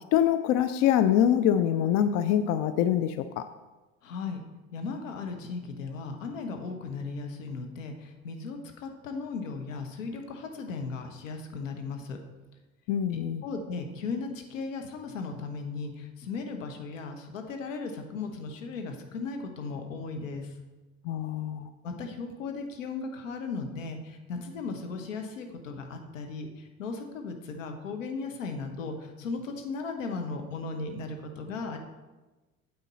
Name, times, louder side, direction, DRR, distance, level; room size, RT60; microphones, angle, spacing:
voice 1, 0.1-3.5 12.9-13.4 21.0-21.7, left 10 dB, 40° left, 11 dB, 0.5 m, -24 dB
voice 2, 4.0-4.4 4.7-12.2 13.1-20.5 21.8-31.8, left 4 dB, 70° left, 5 dB, 1.2 m, -36 dB
9.0 x 7.6 x 4.2 m, 1.2 s
figure-of-eight pair, 60°, 40 cm